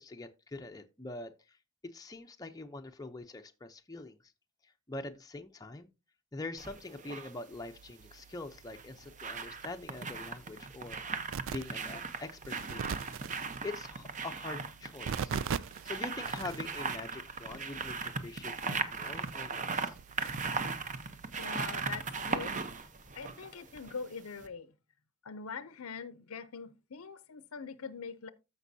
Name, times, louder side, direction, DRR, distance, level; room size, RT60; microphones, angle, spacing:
voice 1, 0.0-1.6 1.8-4.2 4.6-5.9 6.3-11.0 11.5-13.0 13.6-15.3 15.8-20.0, left 2 dB, 15° left, 0.6 m, -44 dB
sound 1, 6.6-7.3 8.6-24.1 24.4-24.5, right 4 dB, 35° right, 0.9 m, -38 dB
sound 2, 7.5-22.8, right 7 dB, 60° right, 0.4 m, -44 dB
voice 2, 21.4-22.5 23.1-24.7 25.2-28.3, left 5 dB, 70° left, 0.6 m, -43 dB
14.5 x 5.4 x 2.7 m
head